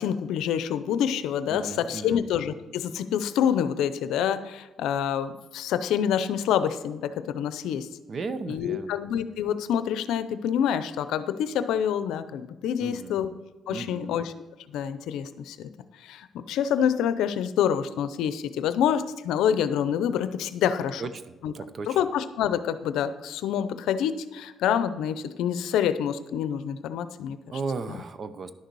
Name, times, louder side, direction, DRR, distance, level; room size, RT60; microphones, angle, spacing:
voice 1, 0.0-7.9 8.5-13.3 13.7-14.3 14.7-15.7 16.0-21.0 21.4-21.5 21.9-27.4 27.9-28.0, left 9 dB, 85° left, 12 dB, 0.6 m, -27 dB
voice 2, 1.5-2.2 8.1-9.0 12.8-13.2 13.7-14.1 21.0-21.2 21.5-22.0 27.5-28.5, right 4 dB, 45° right, 12 dB, 0.7 m, -35 dB
11.0 x 6.6 x 4.7 m, 1.2 s
cardioid pair, 90°, 0 cm